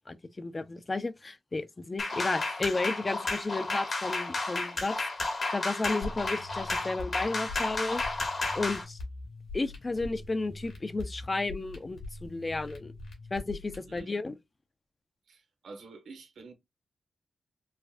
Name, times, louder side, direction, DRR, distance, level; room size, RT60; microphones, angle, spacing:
voice 1, 0.1-4.9 5.5-8.0 8.6-9.0 9.5-12.9 13.3-14.3, left 3 dB, 25° left, 0.4 m, -33 dB
sound 1, 2.0-8.8, left 3 dB, 45° left, 1.2 m, -32 dB
sound 2, 6.0-14.0, left 2 dB, 70° left, 2.3 m, -43 dB
voice 2, 13.9-14.2 15.3-16.5, right 3 dB, 90° right, 1.1 m, -49 dB
4.8 x 2.2 x 2.5 m
wide cardioid pair, 120°, 0 cm